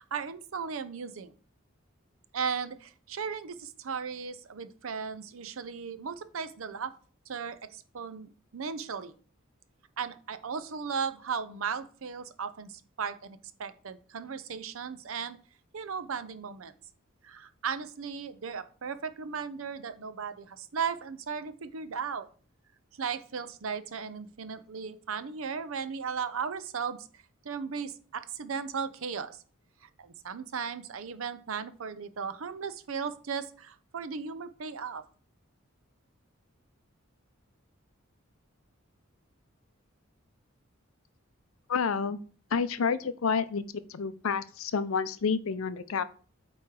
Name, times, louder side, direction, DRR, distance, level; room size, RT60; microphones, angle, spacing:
voice 1, 0.0-1.3 2.3-6.9 7.3-9.1 10.0-15.4 15.7-16.7 17.2-22.3 23.0-29.4 30.0-35.0, right 6 dB, 80° right, 12 dB, 0.6 m, -36 dB
voice 2, 41.7-42.2 42.5-43.6 43.9-46.0, left 5 dB, 80° left, 14 dB, 0.5 m, -29 dB
8.4 x 3.1 x 4.7 m, 0.41 s
head